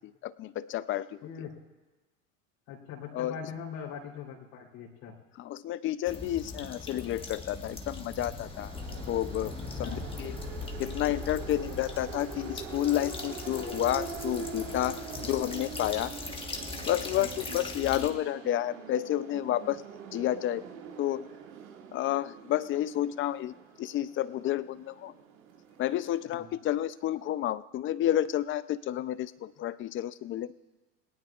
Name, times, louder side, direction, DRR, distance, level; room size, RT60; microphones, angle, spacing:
voice 1, 0.2-1.2 3.1-3.4 5.4-8.7 9.1-9.5 9.8-10.4 10.8-15.0 15.3-16.1 16.9-19.8 20.1-20.7 21.0-21.3 21.9-25.1 25.8-30.5, left 12 dB, 30° left, 16 dB, 0.5 m, -30 dB
voice 2, 1.2-1.6 2.7-5.1 9.8-10.0 15.1-15.3 17.1-17.3 26.3-26.5, left 7 dB, 55° left, -2 dB, 3.5 m, -42 dB
sound 1, 6.1-18.1, left 3 dB, 15° left, 1.5 m, -40 dB
sound 2, 8.4-26.2, right 7 dB, 85° right, 2.0 m, -44 dB
28.5 x 18.5 x 2.4 m, 1.2 s
supercardioid pair, 110°, 41 cm